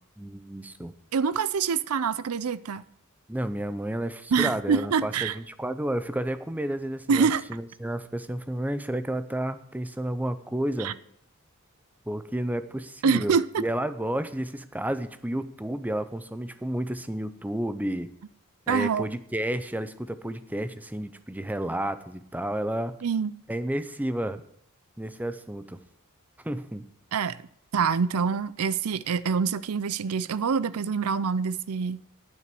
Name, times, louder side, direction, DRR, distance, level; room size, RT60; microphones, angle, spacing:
voice 1, 0.2-0.9 3.3-11.0 12.1-18.1 18.7-23.0 23.5-24.4 25.0-25.8 26.4-26.9, right 1 dB, 10° right, 0.7 m, -31 dB
voice 2, 1.1-2.8 4.3-5.4 7.1-7.4 10.8-10.9 13.0-13.6 18.7-19.1 23.0-23.3 27.1-27.4 27.7-32.0, right 6 dB, 90° right, 0.5 m, -25 dB
9.5 x 8.7 x 7.8 m
head